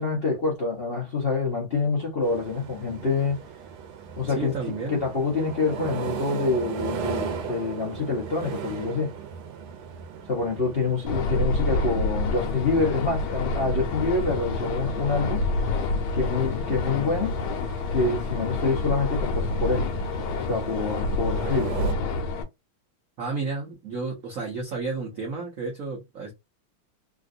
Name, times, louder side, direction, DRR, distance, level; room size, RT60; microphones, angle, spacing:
voice 1, 0.0-3.4 4.2-4.6 4.9-9.1 10.3-15.4 16.1-17.4 17.9-19.9 20.5-21.8, left 4 dB, 60° left, 0.6 m, -26 dB
sound 1, 2.2-21.9, right 7 dB, 85° right, 1.7 m, -38 dB
voice 2, 4.3-5.0 23.2-26.3, right 4 dB, 55° right, 1.0 m, -32 dB
sound 2, 11.1-22.4, left 2 dB, 75° left, 1.5 m, -28 dB
3.7 x 2.5 x 2.5 m
omnidirectional pair, 2.4 m